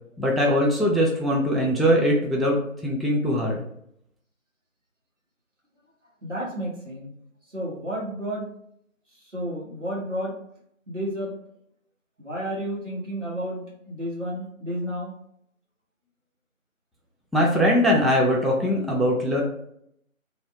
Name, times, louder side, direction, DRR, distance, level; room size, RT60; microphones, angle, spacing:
voice 1, 0.2-3.7 17.3-19.4, equal, ahead, -2 dB, 0.4 m, -21 dB
voice 2, 6.2-7.1 7.5-8.5 9.3-10.3 10.9-11.3 12.2-15.1, equal, 60° right, -6 dB, 1.5 m, -31 dB
3.4 x 2.0 x 3.6 m, 0.71 s
figure-of-eight pair, 170°, 41 cm